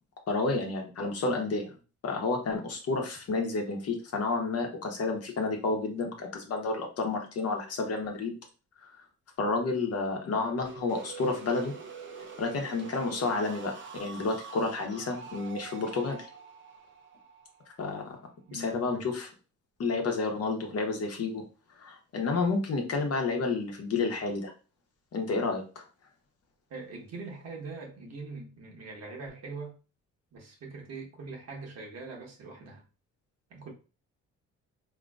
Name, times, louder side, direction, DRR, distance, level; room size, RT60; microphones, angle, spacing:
voice 1, 0.3-1.7 2.0-8.4 8.8-8.9 9.4-11.7 12.4-16.3 17.8-18.2 18.5-19.3 19.8-21.4 21.8-24.5 25.1-25.8, left 3 dB, 55° left, 1.0 m, -30 dB
sound 1, 10.6-18.4, right 5 dB, 40° right, 0.7 m, -45 dB
voice 2, 18.5-19.1 26.7-29.8 30.3-32.8 33.5-33.7, right 3 dB, 55° right, 1.2 m, -42 dB
3.8 x 2.9 x 2.4 m
cardioid pair, 90°, 30 cm